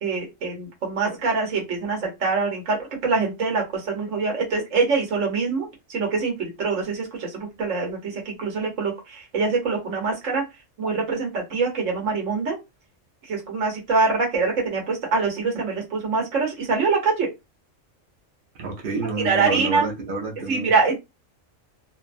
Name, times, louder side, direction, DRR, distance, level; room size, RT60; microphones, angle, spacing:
voice 1, 0.0-2.8 3.0-10.4 10.8-12.6 13.3-17.3 19.2-19.8 20.5-21.0, right 4 dB, 75° right, 1.3 m, -24 dB
voice 2, 18.6-20.8, right 3 dB, 50° right, 0.7 m, -28 dB
3.1 x 2.0 x 2.5 m
omnidirectional pair, 1.3 m